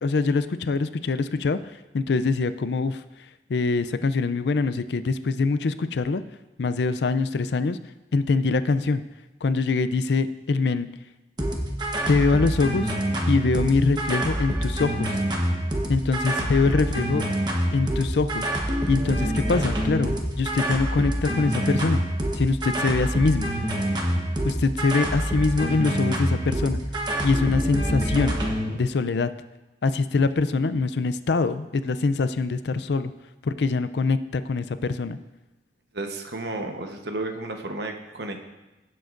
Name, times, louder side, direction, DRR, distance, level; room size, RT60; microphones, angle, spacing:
voice 1, 0.0-1.6 1.9-3.0 3.5-6.2 6.6-7.8 8.1-9.0 9.4-10.9 12.1-13.0 13.3-15.2 15.9-17.3 17.7-18.5 18.9-22.0 22.3-23.5 24.4-26.8 27.2-28.4 28.7-29.3 29.8-33.1 33.4-35.2, left 3 dB, 70° left, 12 dB, 0.4 m, -23 dB
sound 1, 11.4-28.7, right 1 dB, 25° right, 1.1 m, -26 dB
voice 2, 35.9-38.4, right 2 dB, 70° right, 5 dB, 1.0 m, -32 dB
16.5 x 7.6 x 2.6 m, 1.0 s
head